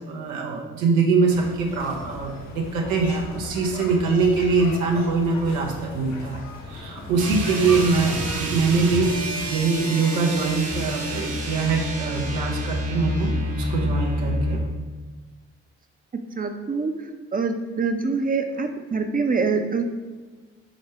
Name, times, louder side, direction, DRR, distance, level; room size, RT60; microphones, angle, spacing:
voice 1, 0.0-6.4 6.7-14.6, right 4 dB, 80° right, 0 dB, 0.7 m, -23 dB
sound 1, 1.3-8.4, left 2 dB, 55° left, 0.8 m, -38 dB
sound 2, 7.1-14.7, equal, 45° right, 1.1 m, -28 dB
voice 2, 16.4-16.9 17.3-19.8, right 4 dB, 25° right, 6 dB, 0.5 m, -24 dB
5.0 x 2.1 x 4.5 m, 1.2 s
hypercardioid pair, 40°, 34 cm